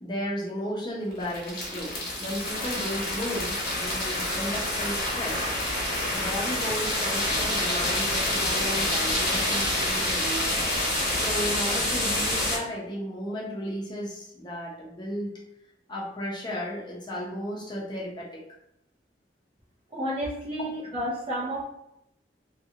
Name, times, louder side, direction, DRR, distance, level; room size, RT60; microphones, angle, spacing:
voice 1, 0.0-5.5 6.1-10.6 11.1-15.3 15.9-18.4 20.6-20.7, equal, 25° left, -4 dB, 0.9 m, -34 dB
sound 1, 1.1-12.6, left 1 dB, 60° left, 1.2 m, -27 dB
voice 2, 19.9-21.7, equal, 30° right, -7 dB, 0.7 m, -31 dB
3.0 x 2.9 x 2.7 m, 0.82 s
head